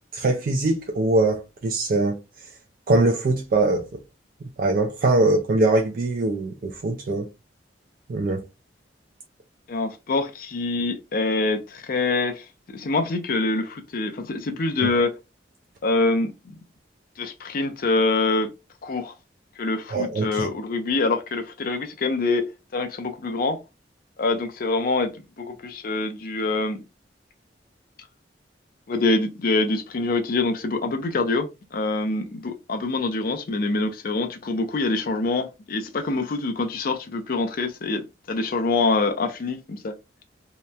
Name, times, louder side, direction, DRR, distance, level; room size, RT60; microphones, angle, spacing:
voice 1, 0.1-2.2 2.9-3.9 4.6-7.3 8.1-8.4 14.8-14.9 19.9-20.5, right 2 dB, 50° right, 0.4 m, -22 dB
voice 2, 9.7-12.5 12.7-15.2 15.8-16.5 17.2-18.5 18.8-19.1 19.6-22.5 22.7-23.6 24.2-26.8 28.9-39.9, left 3 dB, 55° left, 0.5 m, -25 dB
2.8 x 2.1 x 2.2 m
head